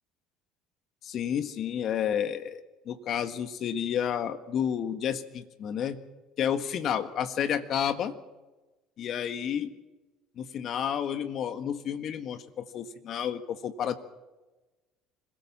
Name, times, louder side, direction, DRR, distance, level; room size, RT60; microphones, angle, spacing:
voice 1, 1.0-6.0 6.4-8.2 9.0-9.7 10.4-13.9, left 9 dB, 55° left, 11 dB, 1.6 m, -31 dB
25.5 x 16.5 x 7.3 m, 1.1 s
hypercardioid pair, 75°, 0 cm